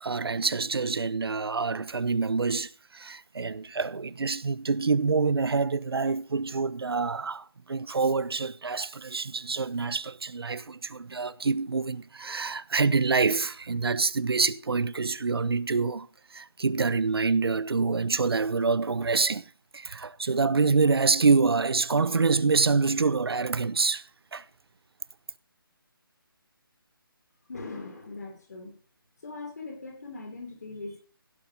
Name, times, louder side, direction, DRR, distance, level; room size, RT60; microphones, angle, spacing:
voice 1, 0.0-16.1 16.3-19.5 19.7-24.0 24.3-24.4, right 4 dB, 85° right, 1.0 m, -26 dB
voice 2, 27.5-28.8 29.2-31.0, left 3 dB, 45° left, 4.4 m, -40 dB
16.5 x 7.4 x 5.3 m
hypercardioid pair, 175°, 12 cm